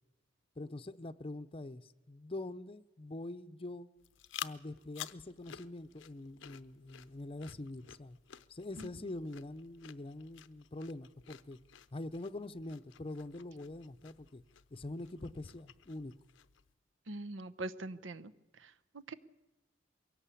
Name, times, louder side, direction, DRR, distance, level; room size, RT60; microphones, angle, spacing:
voice 1, 0.6-3.9 4.4-8.2 8.5-11.6 11.9-14.4 14.7-16.1, left 2 dB, 30° left, 0.6 m, -44 dB
sound 1, 4.0-16.7, left 10 dB, 75° left, 0.7 m, -52 dB
voice 2, 17.1-19.1, right 2 dB, 80° right, 0.9 m, -43 dB
22.5 x 17.0 x 8.4 m
head